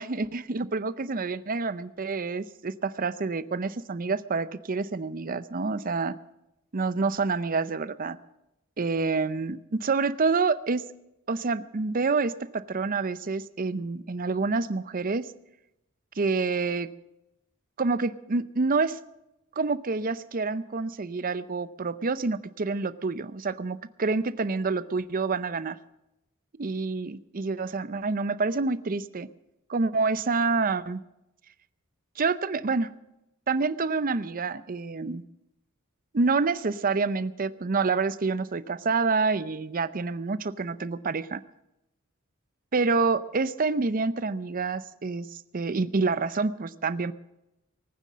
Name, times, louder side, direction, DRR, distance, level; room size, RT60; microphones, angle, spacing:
voice 1, 0.0-6.2 6.7-8.2 8.8-10.9 11.3-15.3 16.2-16.9 17.8-19.0 19.6-25.8 26.6-29.3 29.7-31.0 32.2-32.9 33.5-35.2 36.1-41.4 42.7-45.3 45.5-47.1, right 4 dB, 40° right, 15 dB, 0.6 m, -27 dB
19.0 x 9.6 x 7.4 m, 0.88 s
head